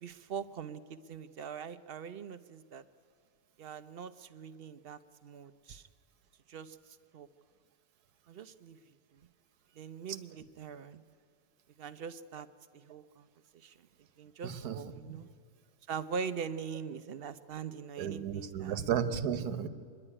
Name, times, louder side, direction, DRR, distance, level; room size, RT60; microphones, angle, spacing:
voice 1, 0.0-2.8 3.6-5.9 6.5-6.8 7.1-7.3 8.3-8.8 9.8-11.0 11.8-12.5 12.7-13.3 13.5-13.9 14.2-15.3 15.9-18.8, right 6 dB, 65° right, 13 dB, 0.5 m, -42 dB
voice 2, 14.4-14.8 15.1-15.2 18.0-19.7, right 8 dB, 80° right, 11 dB, 1.4 m, -33 dB
25.5 x 11.0 x 9.8 m, 2.3 s
omnidirectional pair, 1.6 m